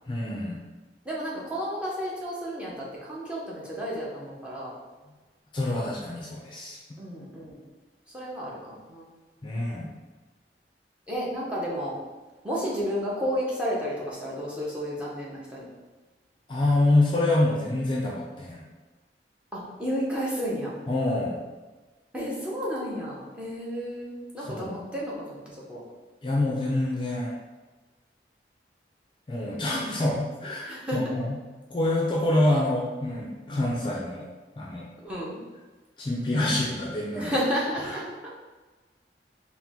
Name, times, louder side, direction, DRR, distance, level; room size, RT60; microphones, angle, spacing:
voice 1, 0.1-0.6 5.5-6.8 9.4-9.9 16.5-18.6 20.9-21.4 24.4-24.8 26.2-27.3 29.3-31.4 31.7-34.3 34.6-34.9 36.0-37.3 37.8-38.0, left 2 dB, 25° left, -4 dB, 0.5 m, -26 dB
voice 2, 1.0-4.7 7.0-7.6 8.1-9.1 11.1-12.0 12.4-15.7 19.5-20.7 22.1-25.4 25.7-25.8 29.8-30.0 30.6-31.0 35.0-35.4 37.1-38.3, equal, 5° right, -6 dB, 0.7 m, -32 dB
4.3 x 2.1 x 3.6 m, 1.2 s
head